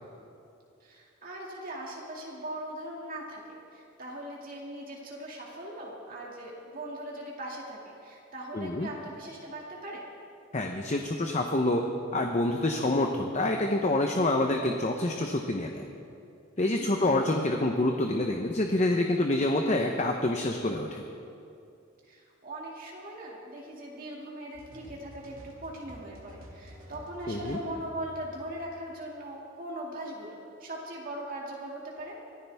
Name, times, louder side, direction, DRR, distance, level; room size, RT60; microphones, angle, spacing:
voice 1, 0.8-10.0 16.5-17.0 22.0-32.2, right 1 dB, 40° right, -3 dB, 2.3 m, -40 dB
voice 2, 8.5-8.9 10.5-11.8 12.1-15.9 16.6-21.0 27.3-27.6, left 2 dB, 35° left, 3 dB, 0.8 m, -27 dB
sound 1, 24.5-29.5, equal, 70° right, 2.5 m, -50 dB
24.0 x 15.0 x 3.5 m, 2.6 s
head